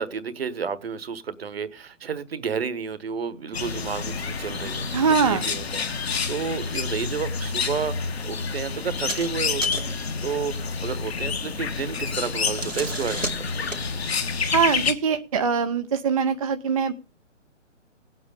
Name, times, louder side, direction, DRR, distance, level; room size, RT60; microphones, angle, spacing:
voice 1, 0.0-13.7, right 6 dB, 50° right, 1.3 m, -31 dB
sound 1, 3.5-14.9, left 5 dB, 55° left, 1.7 m, -29 dB
voice 2, 4.9-5.5 14.5-16.9, right 6 dB, 30° right, 0.6 m, -22 dB
sound 2, 8.9-9.3 9.6-10.0 12.3-13.9, right 2 dB, 90° right, 2.2 m, -33 dB
18.0 x 8.2 x 5.1 m
figure-of-eight pair, 135°, 38 cm